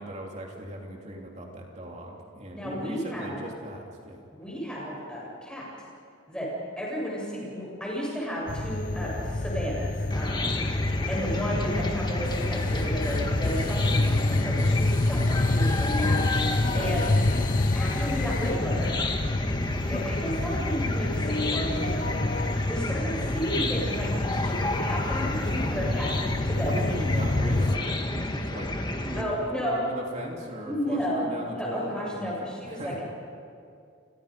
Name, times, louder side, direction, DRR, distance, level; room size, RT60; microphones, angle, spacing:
voice 1, 0.0-4.2 16.7-16.9 26.6-28.7 29.0-33.1, equal, 35° right, -1 dB, 3.2 m, -38 dB
voice 2, 2.5-3.4 4.3-5.7 6.3-6.5 6.8-10.5 11.1-17.0 17.7-18.9 19.9-22.1 22.7-26.1 26.4-26.8 29.2-29.8 30.6-31.2 31.5-33.1, equal, 5° left, -4 dB, 7.7 m, -33 dB
sound 1, 8.5-27.8, left 2 dB, 40° left, 0.7 m, -28 dB
Chicken rooster / Cricket, 10.1-29.2, left 1 dB, 20° left, 1.6 m, -31 dB
30.0 x 25.5 x 5.2 m, 2.4 s
head